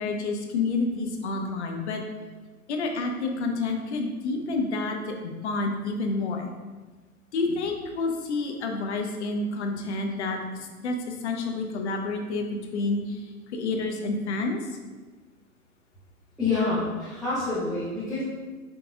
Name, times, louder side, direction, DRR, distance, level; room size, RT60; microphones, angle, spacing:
voice 1, 0.0-2.0 2.7-6.5 7.3-14.8, left 3 dB, 50° left, 3 dB, 0.7 m, -29 dB
voice 2, 16.4-18.2, left 3 dB, ahead, -13 dB, 0.5 m, -27 dB
5.4 x 3.7 x 2.3 m, 1.3 s
figure-of-eight pair, 115°, 44 cm